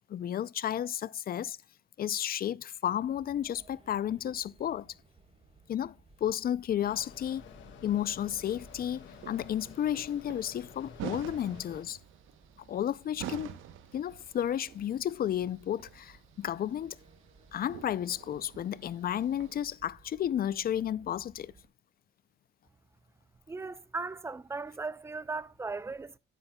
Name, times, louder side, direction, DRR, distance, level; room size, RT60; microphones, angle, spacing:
voice 1, 0.1-1.6 2.0-5.0 5.7-7.4 7.8-12.0 12.7-13.6 13.9-17.0 17.5-21.5, left 10 dB, 50° left, 0.4 m, -32 dB
sound 1, 2.9-21.7, right 4 dB, 30° right, 4.7 m, -60 dB
Mechanisms, 6.8-11.9, left 7 dB, 75° left, 1.7 m, -51 dB
sound 2, 8.2-19.8, right 11 dB, 85° right, 0.9 m, -48 dB
voice 2, 23.5-26.2, right 3 dB, 15° right, 0.5 m, -37 dB
9.8 x 9.8 x 2.3 m
cardioid pair, 90°, 20 cm